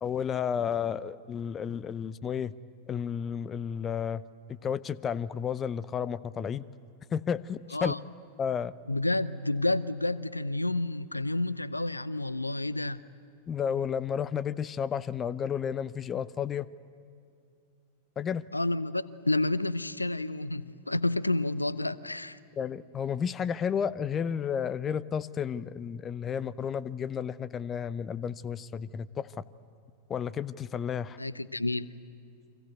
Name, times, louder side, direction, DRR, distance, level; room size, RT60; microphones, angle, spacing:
voice 1, 0.0-2.5 2.9-4.2 4.5-6.6 7.1-7.9 8.4-8.7 13.5-16.7 18.2-18.4 22.6-29.3 30.1-31.2, left 7 dB, 25° left, 0.7 m, -32 dB
voice 2, 8.9-13.0 18.5-22.4 31.2-31.9, left 2 dB, 85° left, 0.7 m, -30 dB
29.0 x 25.0 x 8.2 m
figure-of-eight pair, 90°, 0 cm